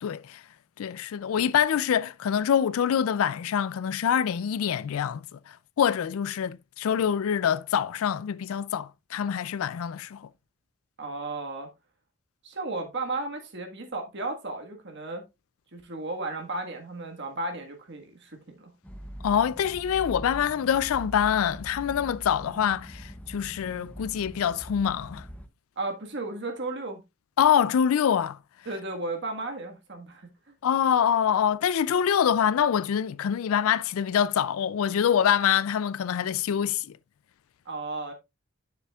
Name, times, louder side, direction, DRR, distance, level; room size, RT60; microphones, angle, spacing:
voice 1, 0.0-0.4 0.8-10.3 19.2-25.3 27.4-28.4 30.6-37.0, left 8 dB, 75° left, 0.3 m, -25 dB
voice 2, 11.0-11.7 12.4-15.2 15.7-18.7 25.8-27.0 28.6-30.3 37.6-38.1, right 2 dB, 50° right, 1.5 m, -34 dB
sound 1, 18.8-25.5, equal, 5° left, 0.7 m, -42 dB
10.0 x 7.0 x 2.3 m
head